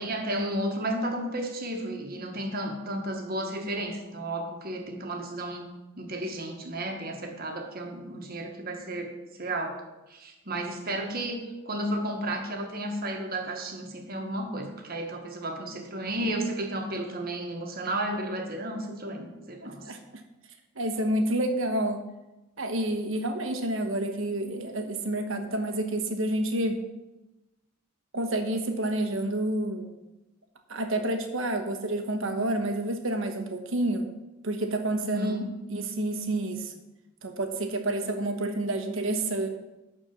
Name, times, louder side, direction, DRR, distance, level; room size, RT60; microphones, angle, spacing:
voice 1, 0.0-5.7 6.0-9.1 9.4-9.8 10.1-19.9 35.1-35.5, right 1 dB, 45° right, 3 dB, 1.5 m, -33 dB
voice 2, 19.6-20.0 20.7-22.0 22.6-26.8 28.1-29.9 30.7-34.1 34.4-35.4 35.7-36.7 37.2-39.5, right 1 dB, 65° right, 6 dB, 1.3 m, -29 dB
12.0 x 4.5 x 7.1 m, 1.0 s
head